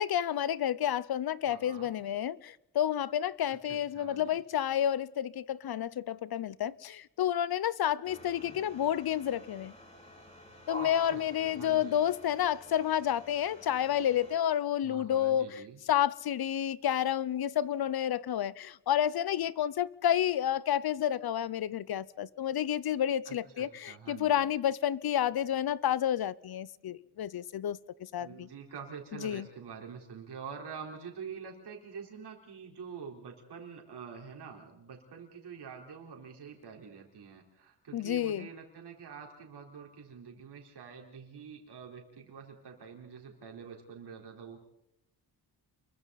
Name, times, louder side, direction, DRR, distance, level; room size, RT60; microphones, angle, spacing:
voice 1, 0.0-9.7 10.7-28.5 29.1-29.5 37.9-38.5, left 10 dB, 65° left, 0.8 m, -30 dB
voice 2, 1.5-1.9 3.5-4.4 10.8-12.1 14.8-15.8 23.3-24.5 28.2-44.6, right 6 dB, 75° right, 4.1 m, -46 dB
sound 1, 8.0-14.4, equal, 15° left, 4.5 m, -49 dB
29.5 x 23.0 x 4.2 m
cardioid pair, 110°, 40 cm